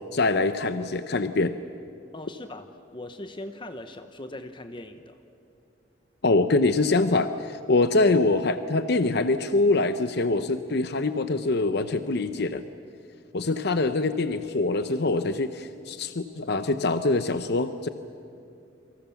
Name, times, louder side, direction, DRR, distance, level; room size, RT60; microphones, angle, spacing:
voice 1, 0.1-1.5 6.2-12.6 13.3-17.9, left 3 dB, 60° left, 10 dB, 0.8 m, -24 dB
voice 2, 2.1-5.2, left 1 dB, 25° left, 8 dB, 0.9 m, -40 dB
28.0 x 24.5 x 7.1 m, 2.7 s
head